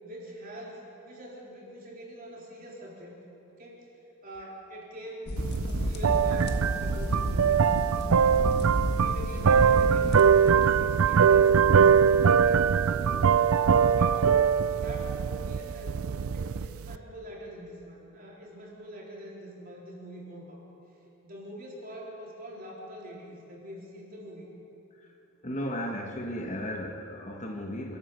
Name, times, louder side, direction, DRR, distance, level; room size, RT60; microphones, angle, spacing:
voice 1, 0.0-3.2 3.5-3.9 4.2-5.3 5.7-7.6 8.2-8.6 9.0-12.7 13.9-14.3 14.7-20.6 21.2-24.5, equal, 40° right, -3 dB, 4.0 m, -44 dB
sound 1, 5.3-10.6, left 1 dB, 50° left, 1.6 m, -32 dB
sound 2, 5.4-17.0, right 7 dB, 75° right, 0.5 m, -22 dB
voice 2, 25.4-28.0, equal, 35° left, 2 dB, 1.5 m, -35 dB
27.0 x 12.5 x 7.7 m, 2.9 s
head